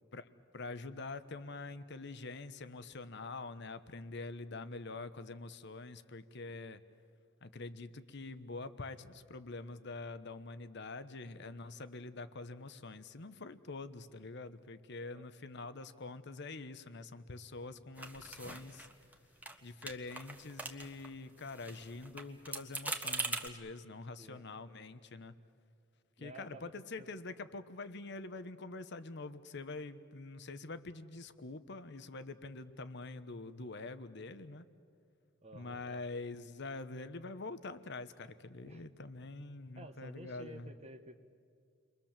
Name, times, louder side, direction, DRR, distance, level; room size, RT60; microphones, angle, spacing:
voice 1, 0.5-6.8 7.4-18.9 19.6-25.3 26.2-34.6 35.5-40.7, left 3 dB, 60° left, 12 dB, 1.1 m, -45 dB
sound 1, 18.0-19.2 19.4-19.6 19.8-21.1 21.4-23.5, right 2 dB, 10° right, 1.4 m, -41 dB
voice 2, 26.2-26.7 27.0-27.1 35.4-36.0 38.6-38.8 39.7-41.2, right 1 dB, 35° right, 7 dB, 1.3 m, -52 dB
30.0 x 23.0 x 7.4 m, 2.3 s
head